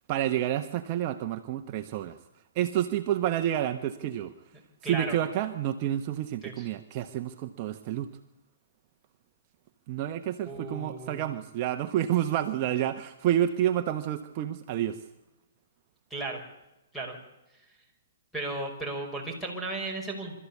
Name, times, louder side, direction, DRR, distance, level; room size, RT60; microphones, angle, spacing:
voice 1, 0.1-2.2 2.5-4.3 4.9-8.1 9.9-15.0, right 11 dB, 40° right, 6 dB, 1.2 m, -29 dB
voice 2, 4.8-5.2 6.4-6.7 10.5-11.2 16.1-16.4 16.9-17.2 18.3-20.3, right 2 dB, 5° left, 2 dB, 5.5 m, -35 dB
26.0 x 14.0 x 8.6 m, 0.96 s
hypercardioid pair, 140°, 0 cm